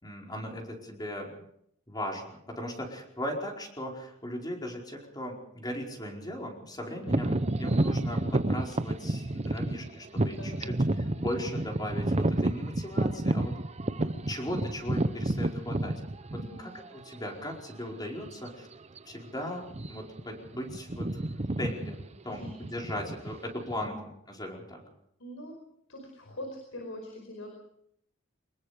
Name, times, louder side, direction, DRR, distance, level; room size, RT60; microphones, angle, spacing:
voice 1, 0.0-1.4 1.9-13.5 14.0-15.9 16.3-18.7 19.1-21.2 21.6-22.0 22.2-23.9 24.3-24.8, left 1 dB, 20° left, 0 dB, 4.8 m, -38 dB
voice 2, 6.8-7.2 10.2-10.8 16.4-16.6 22.3-22.5 23.2-23.3 23.7-23.9 25.2-25.5 25.9-27.6, left 1 dB, 70° left, 3 dB, 5.1 m, -43 dB
sound 1, 7.1-16.8 17.5-17.6 18.2-18.5 18.7-19.0 19.6-20.2 20.5-23.9, right 1 dB, 30° right, 0.8 m, -30 dB
25.0 x 21.0 x 5.1 m, 0.71 s
head